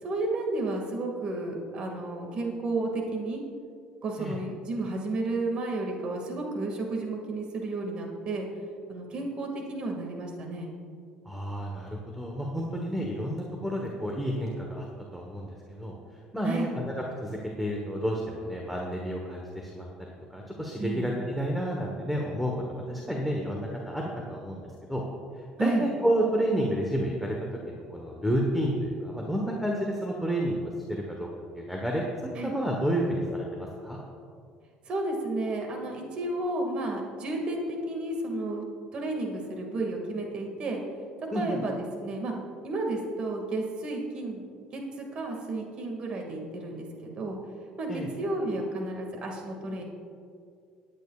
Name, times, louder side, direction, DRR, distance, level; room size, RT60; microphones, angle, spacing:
voice 1, 0.0-3.4 4.0-8.5 8.9-10.7 16.4-16.7 20.8-21.1 25.6-25.9 32.4-32.5 34.9-38.6 38.9-40.8 41.3-42.3 42.6-44.4 44.7-46.9 47.2-47.4 47.8-49.8, right 2 dB, 45° right, 2 dB, 2.0 m, -32 dB
voice 2, 11.2-14.8 15.1-15.9 16.3-19.9 20.3-24.6 24.9-25.0 25.6-27.3 27.7-31.3 31.5-34.0 41.3-41.6 47.9-48.1, equal, ahead, -1 dB, 1.2 m, -30 dB
19.5 x 9.1 x 2.4 m, 2.3 s
cardioid pair, 125°, 3 cm